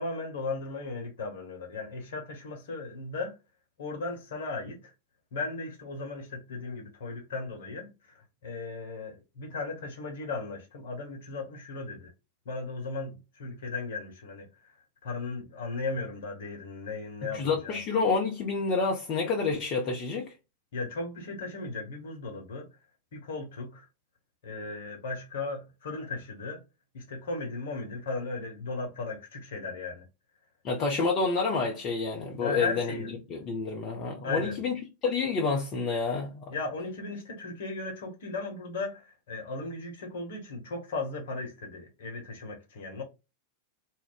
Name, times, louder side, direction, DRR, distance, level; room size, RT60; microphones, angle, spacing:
voice 1, 0.0-3.4 3.8-4.9 5.3-7.9 8.1-12.1 12.4-14.7 15.0-17.8 20.7-22.7 23.1-23.9 24.4-26.6 26.9-30.0 32.4-33.1 34.2-34.6 36.5-43.0, left 3 dB, 60° left, 1.0 m, -36 dB
voice 2, 17.3-20.3 30.6-32.9 33.3-34.7 35.0-36.5, left 4 dB, 35° left, 0.6 m, -28 dB
2.4 x 2.1 x 3.8 m
figure-of-eight pair, 90°, 0 cm